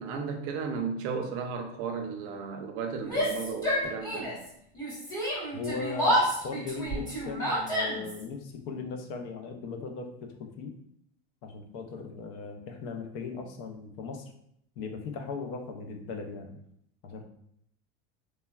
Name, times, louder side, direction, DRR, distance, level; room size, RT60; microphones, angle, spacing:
voice 1, 0.0-4.4, right 5 dB, 45° right, 4 dB, 0.4 m, -34 dB
Yell, 3.0-4.5 4.7-8.2, equal, 10° left, 0.9 m, -29 dB
voice 2, 5.5-10.7 11.4-14.3 14.8-16.6 17.0-17.2, left 4 dB, 65° left, 4 dB, 0.6 m, -38 dB
3.2 x 2.2 x 2.2 m, 0.71 s
cardioid pair, 160°, 31 cm